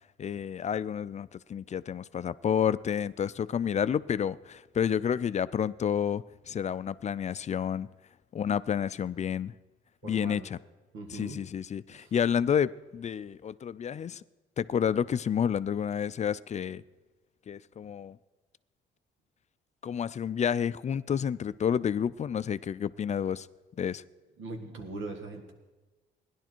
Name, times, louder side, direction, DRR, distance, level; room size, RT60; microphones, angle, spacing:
voice 1, 0.2-7.9 8.3-9.5 10.0-10.6 11.1-14.2 14.6-16.8 17.5-18.2 19.8-23.5 23.8-24.0, left 8 dB, 35° left, 0.4 m, -30 dB
voice 2, 10.0-10.5 10.9-11.4 11.9-12.1 24.4-25.5, right 3 dB, 80° right, 1.8 m, -40 dB
16.5 x 11.0 x 4.5 m
cardioid pair, 90°, 20 cm